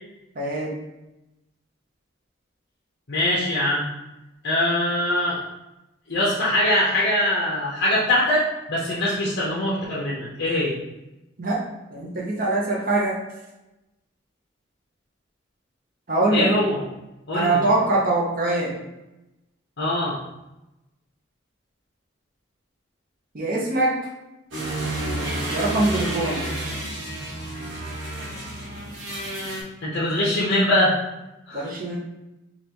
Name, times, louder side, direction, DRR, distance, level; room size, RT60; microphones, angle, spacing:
voice 1, 0.4-0.8 11.4-11.6 11.9-13.2 16.1-16.5 17.3-18.7 23.3-24.0 25.5-26.4 31.5-32.0, right 2 dB, 45° right, -3 dB, 0.7 m, -23 dB
voice 2, 3.1-3.8 4.4-5.4 6.1-10.8 16.3-16.8 17.3-17.6 19.8-20.1 29.8-30.9 31.5-31.7, left 1 dB, 60° left, -7 dB, 0.8 m, -22 dB
sound 1, 24.5-29.6, right 1 dB, 75° right, 1.3 m, -30 dB
5.1 x 2.4 x 2.9 m, 0.96 s
head